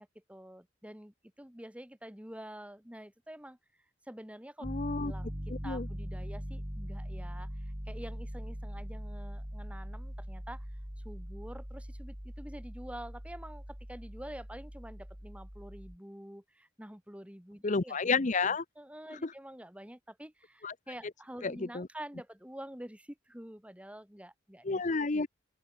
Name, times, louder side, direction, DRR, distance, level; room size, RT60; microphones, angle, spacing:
voice 1, 0.0-3.6 4.1-4.7 5.0-5.3 5.6-10.7 11.0-18.0 18.4-24.8, right 1 dB, 5° right, 2.8 m, -47 dB
voice 2, 4.6-5.1 5.5-5.9 17.6-18.6 19.1-19.3 20.6-20.7 21.4-21.9 24.6-25.3, left 4 dB, 40° left, 0.8 m, -31 dB
Piano, 4.6-16.0, equal, 25° right, 3.4 m, -41 dB
open air
head